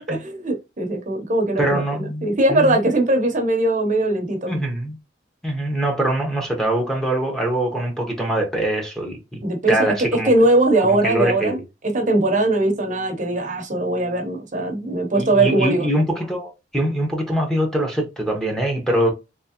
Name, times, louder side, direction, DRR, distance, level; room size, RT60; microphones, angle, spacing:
voice 1, 0.1-4.6 9.4-15.9, right 2 dB, 45° right, 0.8 m, -20 dB
voice 2, 1.6-2.9 4.5-5.0 5.4-9.4 9.7-10.3 10.8-11.6 15.2-19.1, right 1 dB, 5° left, 0.9 m, -23 dB
3.5 x 3.0 x 2.9 m
head